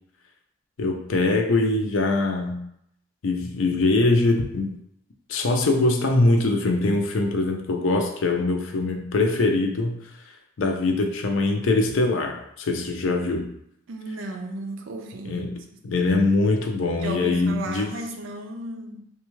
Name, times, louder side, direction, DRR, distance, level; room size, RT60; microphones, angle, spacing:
voice 1, 0.8-2.6 3.2-4.7 5.3-10.0 10.6-13.5 15.3-15.6 15.8-17.9, left 2 dB, 80° left, 0.5 m, -22 dB
voice 2, 13.9-15.5 17.0-19.1, right 2 dB, 85° right, 0.5 m, -34 dB
3.4 x 2.3 x 3.1 m
head